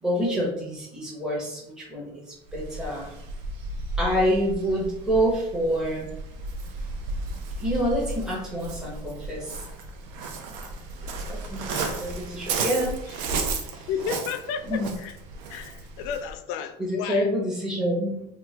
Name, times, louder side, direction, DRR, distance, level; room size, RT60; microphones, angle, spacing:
voice 1, 0.0-3.1 4.0-6.1 7.6-9.5 11.3-13.9 14.6-14.9 16.8-18.2, equal, 5° right, 0.7 m, -27 dB
Waves surf, 2.5-16.3, right 3 dB, 75° right, 0.6 m, -34 dB
voice 2, 11.7-12.0 13.4-13.5 13.9-15.2 15.5-17.3, left 7 dB, 70° left, 0.4 m, -33 dB
3.0 x 2.3 x 3.4 m
cardioid pair, 160°, 15 cm